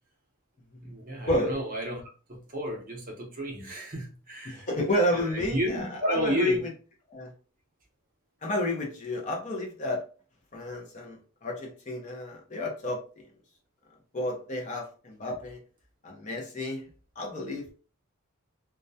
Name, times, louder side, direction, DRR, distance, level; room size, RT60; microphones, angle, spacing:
voice 1, 0.8-2.0 2.3-4.7 5.1-6.6, right 1 dB, 40° right, 0.6 m, -32 dB
voice 2, 4.5-6.7 7.1-7.3 8.4-10.0 10.5-13.3 14.1-15.6 16.0-16.8 17.2-17.7, left 1 dB, 35° left, 0.5 m, -31 dB
2.3 x 2.1 x 2.6 m
head